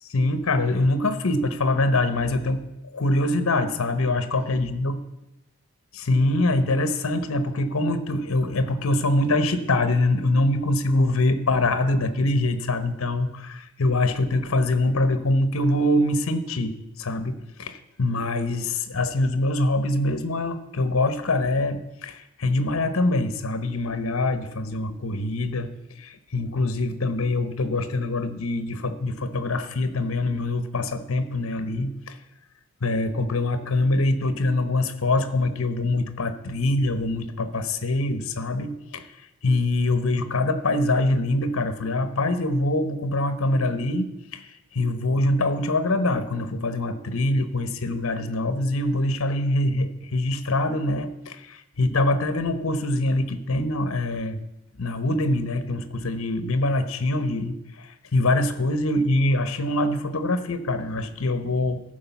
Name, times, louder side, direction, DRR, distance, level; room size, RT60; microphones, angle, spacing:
voice 1, 0.1-2.6 2.9-5.0 6.0-25.7 26.0-32.2 32.8-39.0 39.4-44.4 44.7-54.4 54.8-61.8, left 2 dB, 65° left, 10 dB, 0.9 m, -24 dB
13.0 x 5.0 x 7.0 m, 0.92 s
head